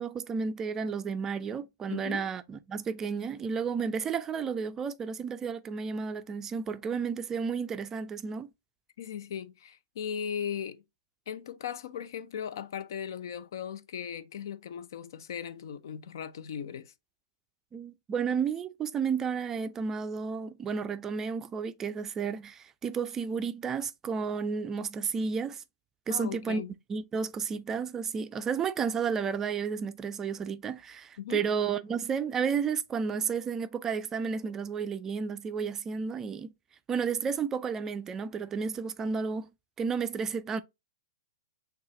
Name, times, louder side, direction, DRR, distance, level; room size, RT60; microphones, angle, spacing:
voice 1, 0.0-8.5 17.7-25.6 26.1-26.6 26.9-36.5 36.9-39.5 39.8-40.6, right 6 dB, 20° right, 0.3 m, -32 dB
voice 2, 1.9-2.3 9.0-10.8 11.3-16.9 26.1-26.7 31.2-31.5, left 8 dB, 65° left, 0.5 m, -38 dB
6.1 x 2.3 x 2.9 m
hypercardioid pair, 130°, 2 cm